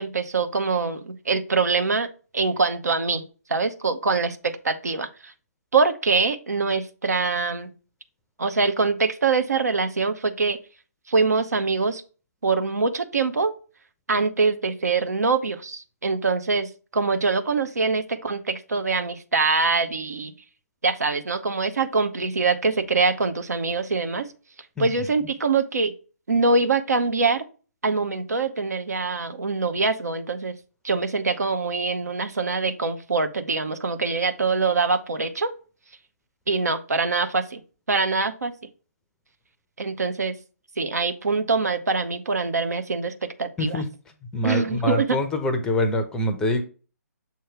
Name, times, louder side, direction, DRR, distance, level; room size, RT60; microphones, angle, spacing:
voice 1, 0.0-2.1 2.3-3.2 3.5-5.3 5.7-7.7 8.4-10.6 11.1-12.0 12.4-13.5 14.1-20.3 20.8-24.3 24.8-25.9 26.3-27.4 27.8-30.6 30.8-35.5 36.5-37.6 37.9-38.5 39.8-40.4 40.8-43.8 44.4-45.2, right 4 dB, 70° right, 8 dB, 0.8 m, -24 dB
voice 2, 43.6-43.9 44.3-46.6, left 1 dB, 5° left, 7 dB, 0.6 m, -24 dB
6.8 x 3.1 x 4.5 m, 0.36 s
figure-of-eight pair, 140°, 9 cm